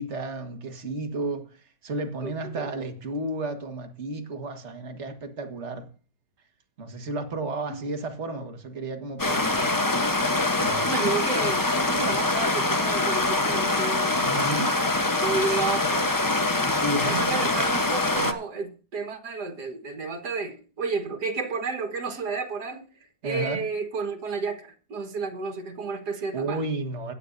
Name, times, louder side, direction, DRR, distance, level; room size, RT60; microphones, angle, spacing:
voice 1, 0.0-5.9 6.8-9.8 10.5-11.0 14.2-14.8 16.8-17.4 18.1-18.3 23.2-23.6 26.3-27.1, right 2 dB, 45° right, 1.9 m, -32 dB
voice 2, 2.2-2.7 7.7-7.8 10.9-14.3 15.2-16.2 17.1-22.9 23.2-26.6, right 4 dB, 75° right, 2.1 m, -31 dB
Stream, 9.2-18.3, left 2 dB, 20° left, 0.7 m, -24 dB
16.5 x 10.0 x 2.6 m
omnidirectional pair, 1.7 m